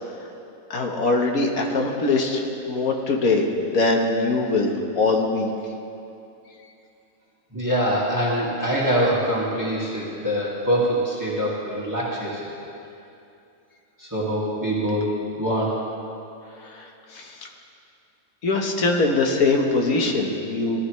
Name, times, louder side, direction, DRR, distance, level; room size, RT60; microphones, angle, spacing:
voice 1, 0.7-5.5 16.7-16.9 17.1-17.3 18.4-20.8, left 3 dB, 75° left, 1 dB, 1.7 m, -22 dB
voice 2, 7.5-12.4 14.0-15.1 15.4-15.8, equal, 15° right, -6 dB, 2.0 m, -24 dB
18.5 x 12.5 x 3.2 m, 2.7 s
omnidirectional pair, 1.5 m